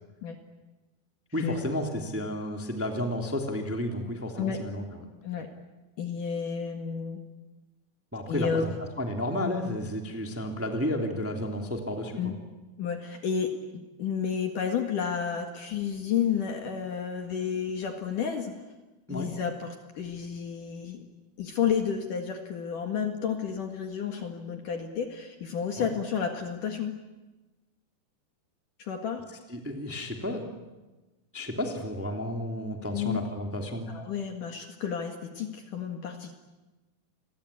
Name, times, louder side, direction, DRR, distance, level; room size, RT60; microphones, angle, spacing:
voice 1, 1.3-4.8 8.1-8.7 9.0-12.3 19.1-19.3 25.8-25.9 29.5-30.5 31.3-33.9, left 1 dB, 5° right, 2 dB, 2.2 m, -32 dB
voice 2, 6.0-7.2 8.3-8.7 12.2-12.3 12.8-18.6 19.1-21.0 21.4-26.9 28.8-29.3 32.9-33.2 33.9-36.3, left 7 dB, 55° left, 5 dB, 2.9 m, -31 dB
29.5 x 22.5 x 8.6 m, 1.1 s
omnidirectional pair, 5.0 m